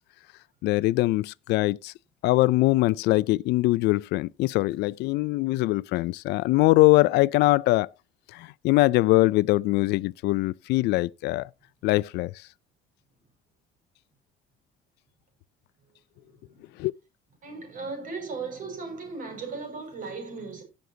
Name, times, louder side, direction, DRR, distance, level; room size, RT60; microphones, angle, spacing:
voice 1, 0.6-1.9 2.2-7.9 8.3-11.5 11.8-12.3 16.8-16.9, left 19 dB, 80° left, 0.4 m, -22 dB
voice 2, 17.4-20.6, right 4 dB, 55° right, 5.8 m, -36 dB
17.5 x 6.5 x 2.8 m
cardioid pair, 110°, 17 cm